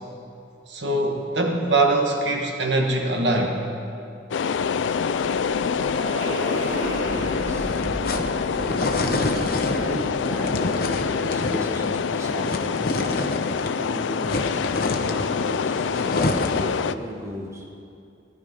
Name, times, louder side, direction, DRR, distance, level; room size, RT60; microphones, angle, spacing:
voice 1, 0.7-3.6, right 2 dB, 75° right, 2 dB, 1.5 m, -22 dB
sound 1, 4.3-17.0, left 6 dB, 85° left, 0.4 m, -26 dB
sound 2, 4.8-11.0, equal, 40° right, 2.5 m, -34 dB
voice 2, 7.0-8.2 8.6-12.9 13.8-14.8 15.0-15.9 16.2-17.7, equal, 15° right, -1 dB, 1.3 m, -36 dB
sound 3, 7.5-13.8 14.0-16.8, left 2 dB, 50° left, 0.9 m, -28 dB
16.0 x 11.5 x 5.3 m, 2.5 s
head